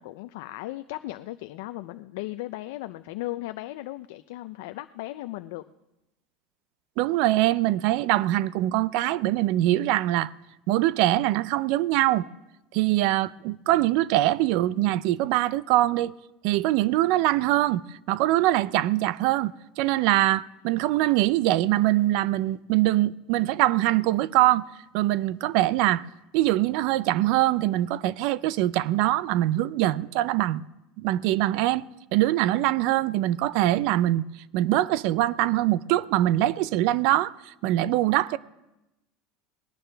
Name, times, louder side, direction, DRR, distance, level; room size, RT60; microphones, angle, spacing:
voice 1, 0.0-5.6, left 17 dB, 70° left, 0.4 m, -36 dB
voice 2, 7.0-10.3 10.7-12.3 12.7-16.1 16.4-24.7 24.9-26.0 26.3-30.7 31.0-31.8 32.1-34.2 34.5-38.4, right 15 dB, 55° right, 0.4 m, -23 dB
19.5 x 18.0 x 3.4 m
cardioid pair, 170°, 0 cm